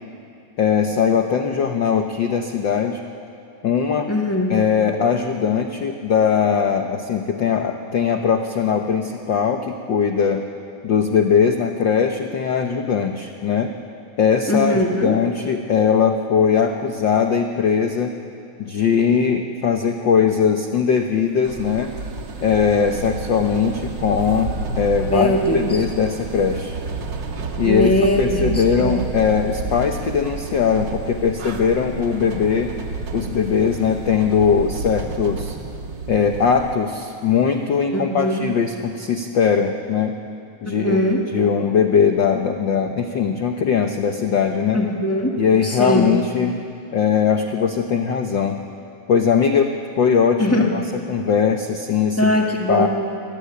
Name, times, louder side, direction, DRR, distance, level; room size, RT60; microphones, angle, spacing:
voice 1, 0.6-3.0 3.6-4.1 4.5-10.5 10.8-13.7 14.2-18.1 18.6-21.9 22.4-26.8 27.6-27.9 28.2-32.7 33.1-35.6 36.1-40.1 40.6-41.0 41.3-44.8 45.4-46.6 46.9-48.6 49.1-50.8 51.1-52.3 52.7-52.9, left 6 dB, 85° left, 5 dB, 1.0 m, -20 dB
voice 2, 4.1-4.6 14.5-15.2 25.1-25.8 27.6-28.9 37.9-38.4 40.6-41.2 44.7-46.1 50.4-50.7 52.2-52.9, left 1 dB, 15° left, 0 dB, 0.4 m, -21 dB
sound 1, 21.4-36.7, right 4 dB, 45° right, 1.7 m, -30 dB
24.5 x 17.0 x 9.8 m, 2.7 s
omnidirectional pair, 3.5 m